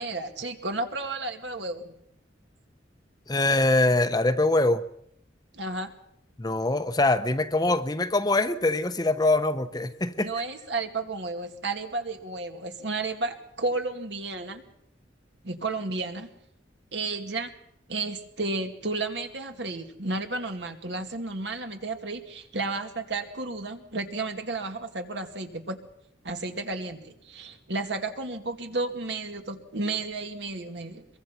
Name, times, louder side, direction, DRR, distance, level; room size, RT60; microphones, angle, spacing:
voice 1, 0.0-1.9 5.5-5.9 10.2-14.6 15.4-16.3 16.9-17.5 17.9-25.8 26.2-31.1, right 3 dB, 70° right, 2.3 m, -32 dB
voice 2, 3.3-4.8 6.4-10.3, left 2 dB, 20° left, 0.8 m, -23 dB
23.0 x 23.0 x 5.8 m
head